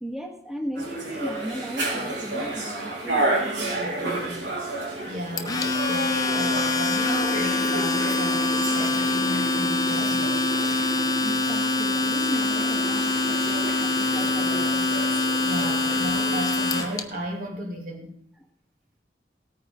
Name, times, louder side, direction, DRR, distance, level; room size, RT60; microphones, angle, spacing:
voice 1, 0.0-4.6 11.2-15.0, equal, ahead, 2 dB, 1.6 m, -36 dB
sound 1, 0.7-17.0, right 2 dB, 85° right, 4.1 m, -32 dB
voice 2, 5.0-10.4 15.4-18.2, equal, 50° right, 0 dB, 2.9 m, -34 dB
Domestic sounds home sounds, 5.4-17.0, left 3 dB, 20° left, 1.0 m, -24 dB
sound 2, 6.6-15.7, right 1 dB, 25° right, 1.2 m, -38 dB
18.5 x 9.3 x 3.8 m, 0.64 s
head